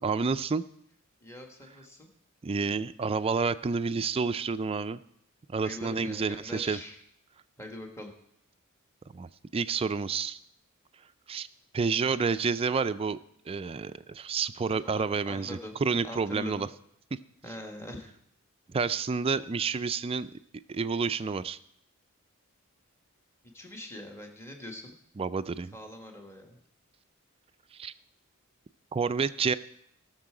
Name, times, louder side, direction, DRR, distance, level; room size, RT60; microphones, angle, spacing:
voice 1, 0.0-0.6 2.4-5.0 5.5-6.8 9.1-10.4 11.3-11.5 11.7-13.2 13.5-16.7 17.1-17.2 17.5-17.6 18.7-20.3 20.7-21.6 25.2-25.8 27.7-27.9 28.9-29.5, right 5 dB, 25° right, 13 dB, 0.3 m, -29 dB
voice 2, 1.2-2.1 5.6-6.9 7.6-8.1 14.7-15.8 16.0-16.7 17.4-18.1 23.5-24.9 25.7-26.6, left 1 dB, 10° left, 2 dB, 1.3 m, -43 dB
17.5 x 6.6 x 4.9 m, 0.70 s
head